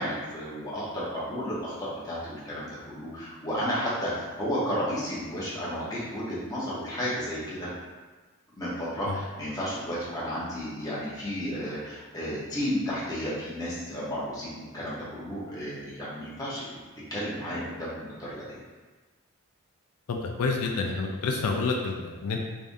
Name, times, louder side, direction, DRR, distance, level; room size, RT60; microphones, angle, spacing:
voice 1, 0.0-4.1 4.4-7.7 8.5-16.7 17.1-18.6, equal, 15° left, -8 dB, 1.1 m, -32 dB
voice 2, 20.1-22.4, left 4 dB, 85° left, 2 dB, 0.4 m, -28 dB
3.5 x 3.5 x 2.6 m, 1.3 s
head